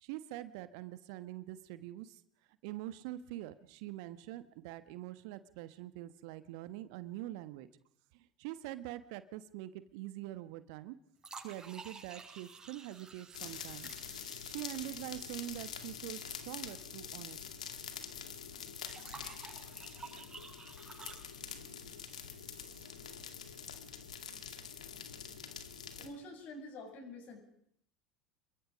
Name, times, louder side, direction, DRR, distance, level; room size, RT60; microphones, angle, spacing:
voice 1, 0.0-2.2 2.6-7.7 8.1-11.0 11.3-13.9 14.4-17.4, right 15 dB, 60° right, 13 dB, 1.3 m, -44 dB
sound 1, 11.2-17.4 17.6-17.7 18.9-23.9, right 4 dB, 15° right, 7.4 m, -53 dB
sound 2, 13.3-26.1, left 7 dB, 75° left, 2.3 m, -46 dB
voice 2, 26.0-27.4, left 1 dB, 45° left, 3 dB, 7.8 m, -47 dB
28.0 x 23.0 x 5.2 m, 0.69 s
figure-of-eight pair, 70°, 4 cm